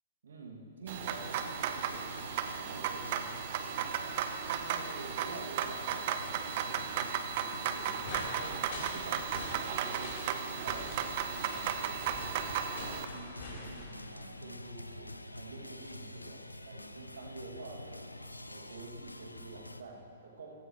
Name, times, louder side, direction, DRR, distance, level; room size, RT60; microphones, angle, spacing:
voice 1, 0.2-3.7 4.4-8.6 8.9-18.0 18.5-20.6, right 3 dB, 60° right, 0 dB, 2.1 m, -49 dB
sound 1, 0.9-19.8, left 1 dB, 85° left, 0.5 m, -48 dB
sound 2, 0.9-13.0, right 8 dB, 40° right, 0.7 m, -35 dB
sound 3, 7.7-13.9, left 2 dB, 45° left, 3.7 m, -45 dB
15.5 x 15.0 x 3.1 m, 2.6 s
figure-of-eight pair, 115°, 0 cm